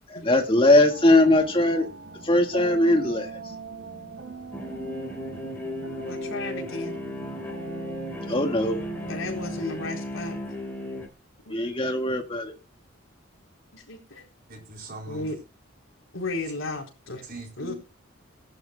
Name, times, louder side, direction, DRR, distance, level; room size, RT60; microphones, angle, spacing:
voice 1, 0.1-1.9 2.2-3.3 8.3-8.8 11.5-12.5, left 1 dB, 25° left, 4 dB, 1.9 m, -20 dB
sound 1, 0.9-10.0, right 4 dB, 65° right, 3.6 m, -41 dB
sound 2, 4.5-11.1, left 1 dB, 10° left, 3.6 m, -35 dB
voice 2, 6.1-7.0 8.3-8.5 9.1-10.4 11.5-11.6 13.7-14.3 15.1-15.4 16.1-17.2 17.6-17.7, left 2 dB, 70° left, 1 dB, 4.1 m, -34 dB
voice 3, 14.5-15.3 17.2-17.7, right 2 dB, 45° right, 1 dB, 4.1 m, -40 dB
19.0 x 11.0 x 2.3 m, 0.30 s
head